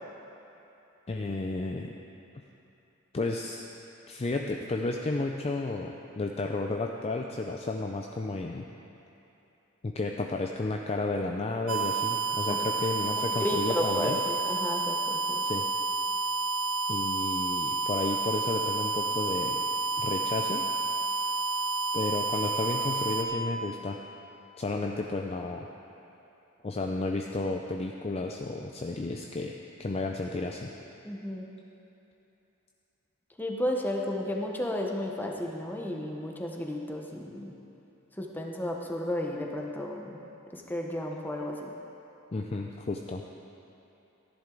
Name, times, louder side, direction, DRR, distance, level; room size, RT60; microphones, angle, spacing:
voice 1, 1.1-1.9 2.3-2.4 3.1-3.6 4.1-8.7 9.8-14.2 15.4-15.7 16.9-19.6 20.0-20.6 21.9-24.0 24.6-25.7 26.6-30.7 42.3-43.2, left 2 dB, 30° left, 2 dB, 0.4 m, -32 dB
sound 1, 11.7-23.2, right 3 dB, 75° right, 0.7 m, -30 dB
voice 2, 13.2-15.4 31.0-31.4 33.4-37.5 38.2-40.2 40.5-41.6, left 1 dB, 10° left, 0 dB, 0.9 m, -33 dB
14.5 x 10.5 x 3.9 m, 2.9 s
head